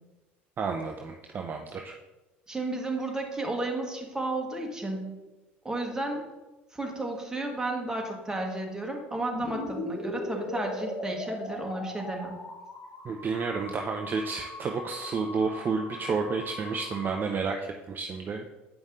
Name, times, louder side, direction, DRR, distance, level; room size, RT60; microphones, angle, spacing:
voice 1, 0.6-1.9 13.0-18.5, right 4 dB, 30° right, 3 dB, 0.6 m, -31 dB
voice 2, 2.5-5.2 5.6-6.3 6.7-12.3, right 2 dB, 10° right, 1 dB, 1.6 m, -33 dB
sound 1, 9.3-17.2, left 2 dB, 45° left, 2.2 m, -39 dB
7.9 x 5.3 x 3.7 m, 1.1 s
figure-of-eight pair, 65°, 6 cm